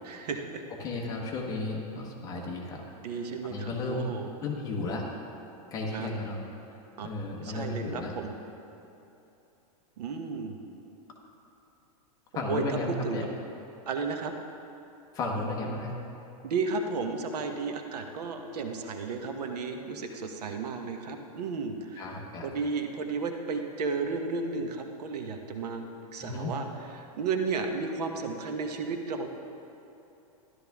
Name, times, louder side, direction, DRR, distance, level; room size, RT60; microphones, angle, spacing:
voice 1, 0.0-0.6 3.0-4.3 5.9-6.1 7.0-7.1 7.4-8.3 10.0-10.6 12.5-13.3 13.9-14.3 16.4-26.7 26.9-29.3, right 4 dB, 85° right, 5 dB, 1.2 m, -33 dB
voice 2, 0.8-2.8 3.1-4.1 4.4-5.0 5.7-6.4 7.0-8.1 12.3-13.3 15.1-15.9 22.0-22.5 26.2-26.5, left 2 dB, 20° left, -1 dB, 1.1 m, -34 dB
13.0 x 12.0 x 3.6 m, 2.9 s
supercardioid pair, 170°, 20 cm